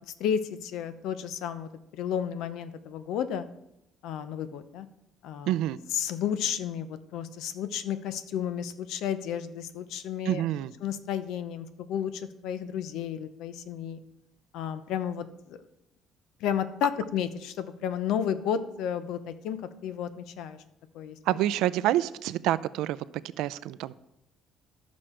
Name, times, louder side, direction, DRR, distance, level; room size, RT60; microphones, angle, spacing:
voice 1, 0.2-3.5 4.0-4.9 5.2-5.6 5.9-10.4 10.8-14.0 14.5-15.6 16.4-20.6 20.9-21.2, left 8 dB, 80° left, 12 dB, 0.7 m, -32 dB
voice 2, 5.5-5.8 10.3-10.7 21.3-23.0 23.4-24.0, right 14 dB, 85° right, 16 dB, 0.4 m, -27 dB
13.0 x 6.3 x 4.4 m, 0.85 s
cardioid pair, 115°, 0 cm